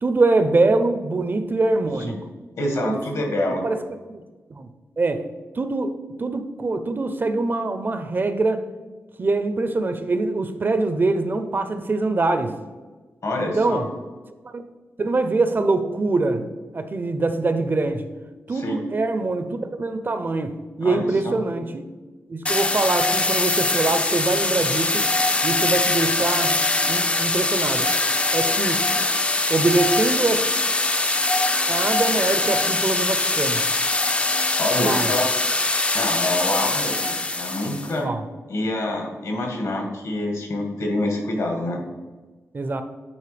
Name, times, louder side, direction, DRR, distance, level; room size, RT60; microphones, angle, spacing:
voice 1, 0.0-2.2 2.9-3.0 3.6-3.8 4.1-4.2 4.5-4.7 5.0-5.3 5.5-8.6 9.2-12.5 13.4-13.9 14.4-14.6 15.0-16.4 16.7-18.1 18.5-21.8 22.3-25.1 25.4-26.6 26.9-27.9 28.3-28.8 29.5-30.5 31.7-33.6 34.8-35.1 38.0-38.2 42.5-42.8, right 3 dB, 35° right, 9 dB, 0.5 m, -23 dB
voice 2, 2.5-3.7 13.2-13.8 18.5-18.8 20.8-21.4 34.6-35.3 35.9-38.1 38.5-41.8, left 1 dB, 70° left, 1 dB, 1.7 m, -26 dB
sound 1, 22.5-37.9, left 2 dB, 20° left, 0.4 m, -22 dB
9.9 x 4.4 x 3.3 m, 1.3 s
wide cardioid pair, 115°, 6 cm